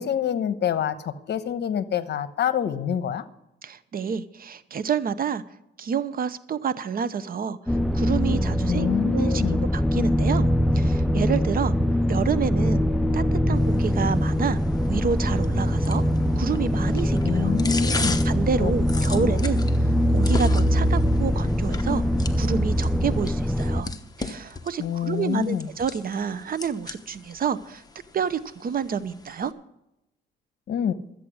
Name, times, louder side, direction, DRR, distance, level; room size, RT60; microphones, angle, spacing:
voice 1, 0.0-3.3 8.7-9.6 17.2-18.2 18.6-19.4 24.8-25.7 30.7-30.9, left 8 dB, 60° left, 12 dB, 1.0 m, -27 dB
voice 2, 3.6-5.4 5.8-9.4 9.7-10.5 10.7-11.7 12.1-12.8 13.1-14.6 14.9-16.0 16.4-17.5 18.0-19.6 20.1-22.0 22.4-23.9 24.2-27.8 28.1-29.5, right 6 dB, 45° right, 14 dB, 0.8 m, -28 dB
sound 1, 7.7-23.8, equal, ahead, 0.4 m, -23 dB
sound 2, 13.6-29.5, left 3 dB, 20° left, 1.0 m, -38 dB
13.5 x 8.4 x 6.2 m, 0.86 s
cardioid pair, 90°, 20 cm